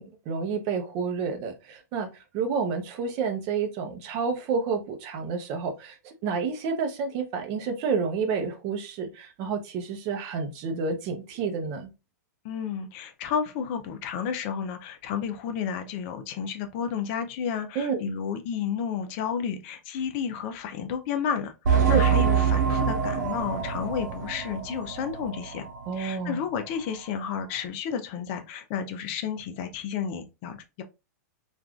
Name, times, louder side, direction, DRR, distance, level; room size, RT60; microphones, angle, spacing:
voice 1, 0.0-2.1 2.3-11.9 17.7-18.0 21.8-22.0 25.9-26.4, right 5 dB, 40° right, 0.7 m, -29 dB
voice 2, 12.4-25.6 25.9-30.8, left 7 dB, 40° left, 0.5 m, -31 dB
sound 1, 21.6-25.9 26.2-26.3 26.9-27.0, right 7 dB, 75° right, 0.7 m, -25 dB
3.5 x 2.4 x 2.3 m
hypercardioid pair, 140°, 9 cm